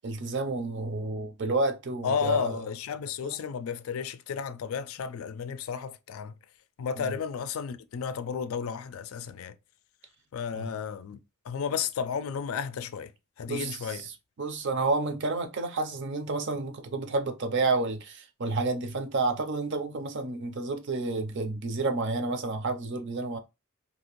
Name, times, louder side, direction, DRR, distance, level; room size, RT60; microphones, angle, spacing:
voice 1, 0.0-2.6 3.2-3.4 7.0-7.1 10.5-10.7 13.5-13.8 14.4-23.4, right 3 dB, 55° right, 0.6 m, -30 dB
voice 2, 2.0-6.4 6.8-9.5 10.3-11.2 11.4-13.1 13.4-14.0, left 6 dB, 70° left, 0.3 m, -32 dB
2.8 x 2.5 x 3.0 m
head